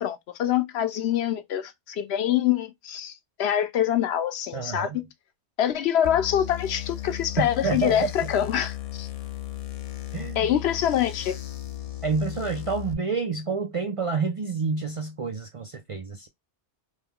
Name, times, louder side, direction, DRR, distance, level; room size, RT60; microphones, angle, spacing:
voice 1, 0.0-4.9 5.6-9.1 10.4-11.4, left 10 dB, 70° left, 0.9 m, -25 dB
voice 2, 4.5-5.0 7.4-8.3 10.1-10.5 12.0-16.3, right 4 dB, 55° right, 0.3 m, -28 dB
sound 1, 6.0-12.9, left 15 dB, 50° left, 0.5 m, -36 dB
3.1 x 2.2 x 3.5 m
omnidirectional pair, 1.2 m